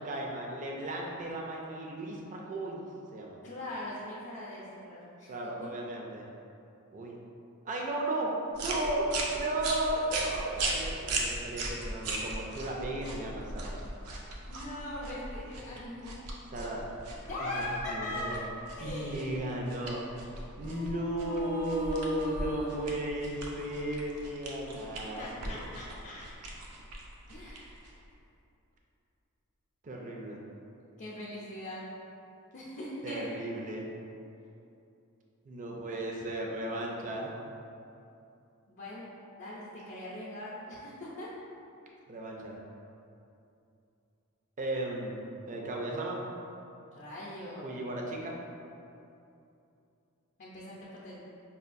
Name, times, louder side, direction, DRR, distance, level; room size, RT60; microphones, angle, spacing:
voice 1, 0.0-3.4 5.3-6.3 6.9-7.2 7.7-13.8 16.5-16.8 17.4-18.4 18.8-20.0 20.6-25.6 29.8-30.4 33.0-33.9 35.5-37.3 42.1-42.6 44.6-45.1 45.5-46.2 47.6-48.4, right 1 dB, 35° right, -1 dB, 0.4 m, -35 dB
voice 2, 3.4-5.3 14.5-16.1 17.3-18.4 18.8-19.4 20.6-22.8 25.2-26.3 27.3-27.9 31.0-31.8 32.5-33.4 38.7-39.1 39.3-41.3 46.9-47.8 50.4-51.2, left 1 dB, 50° left, -7 dB, 0.5 m, -40 dB
sound 1, 8.5-28.1, right 2 dB, 85° right, 0.5 m, -39 dB
5.4 x 2.3 x 2.5 m, 2.7 s
head